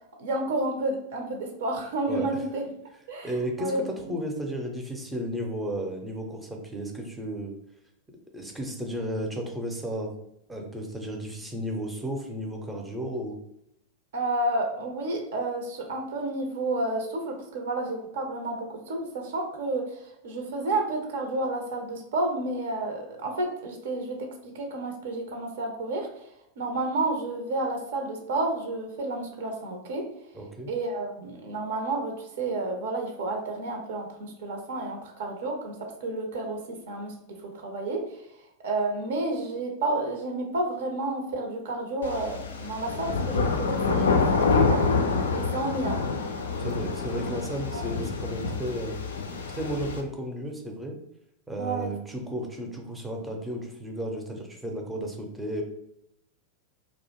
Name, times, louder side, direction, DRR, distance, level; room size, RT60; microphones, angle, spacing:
voice 1, 0.2-2.6 3.1-3.3 3.6-4.1 14.1-26.3 26.6-30.1 30.7-38.2 38.6-44.9 45.3-46.0 47.7-47.9 51.6-51.9 52.3-52.5, right 2 dB, 55° right, 2 dB, 0.5 m, -31 dB
voice 2, 2.1-2.4 3.2-7.5 8.3-10.1 10.5-13.4 30.3-30.7 46.6-49.0 49.5-51.0 51.5-55.6, equal, 10° right, 1 dB, 0.5 m, -33 dB
sound 1, 42.0-50.0, left 4 dB, 65° left, 0.3 m, -27 dB
2.4 x 2.0 x 2.9 m, 0.79 s
figure-of-eight pair, 90°, 0 cm